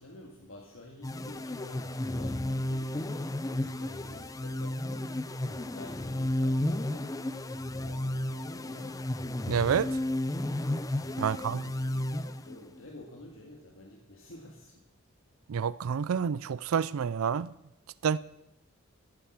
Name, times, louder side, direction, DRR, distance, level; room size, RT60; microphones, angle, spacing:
voice 1, 0.0-7.3 7.7-9.0 11.0-14.8, left 1 dB, 70° left, 1.9 m, -50 dB
sound 1, 1.0-12.8, left 1 dB, 15° left, 0.5 m, -33 dB
voice 2, 9.5-9.9 11.2-11.6 15.5-17.5 18.0-18.2, right 7 dB, 85° right, 0.4 m, -28 dB
14.5 x 8.7 x 7.3 m
head